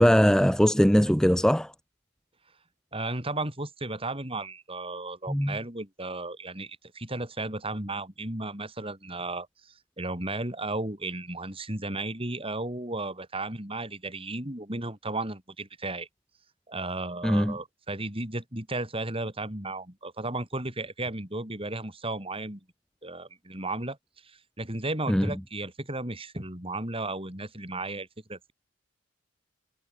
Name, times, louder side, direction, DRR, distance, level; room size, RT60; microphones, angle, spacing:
voice 1, 0.0-1.7 5.3-5.6 17.2-17.6 25.1-25.3, equal, 5° left, 0.7 m, -21 dB
voice 2, 2.9-16.1 16.7-22.6 23.0-24.0 24.2-28.5, right 2 dB, 25° right, 4.8 m, -34 dB
head